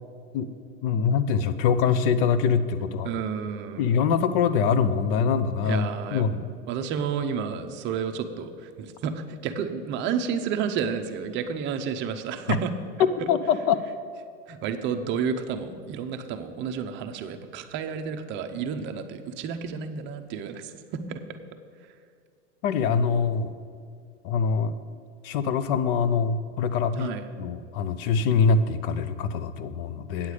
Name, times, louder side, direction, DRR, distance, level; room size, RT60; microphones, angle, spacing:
voice 1, 0.8-3.1 3.8-6.4 12.5-12.6 13.0-13.8 22.6-23.5 24.2-24.7 25.2-30.3, left 6 dB, 45° left, 13 dB, 0.6 m, -24 dB
voice 2, 3.0-3.9 5.6-12.7 14.5-20.7 21.1-21.2 27.0-27.2 30.2-30.3, right 7 dB, 30° right, 7 dB, 0.6 m, -31 dB
8.6 x 8.0 x 4.9 m, 2.3 s
supercardioid pair, 135°, 37 cm